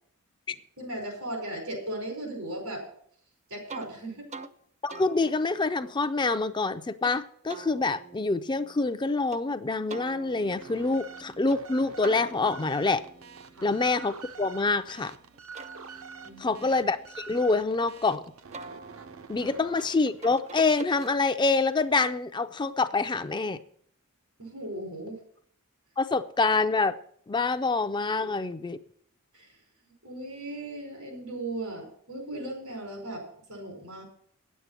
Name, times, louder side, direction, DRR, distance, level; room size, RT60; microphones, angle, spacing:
voice 1, 0.8-2.9 3.5-4.3 13.5-13.7 16.2-16.6 24.4-25.2 28.1-28.3 29.3-29.6 29.8-34.0, right 1 dB, 90° right, 2 dB, 4.7 m, -37 dB
sound 1, 3.7-3.9 4.3-4.5 4.9-7.1 7.5-9.4 9.9-11.6 12.0-14.9 15.3-18.0 18.5-21.5, right 4 dB, 30° right, 0.6 m, -47 dB
voice 2, 4.8-13.0 13.6-15.1 16.4-18.2 19.3-23.6 26.0-26.9 27.3-28.8, left 3 dB, 20° left, 10 dB, 0.4 m, -26 dB
sound 2, 10.3-20.9, right 5 dB, 65° right, 0.7 m, -47 dB
9.6 x 8.3 x 7.3 m, 0.63 s
head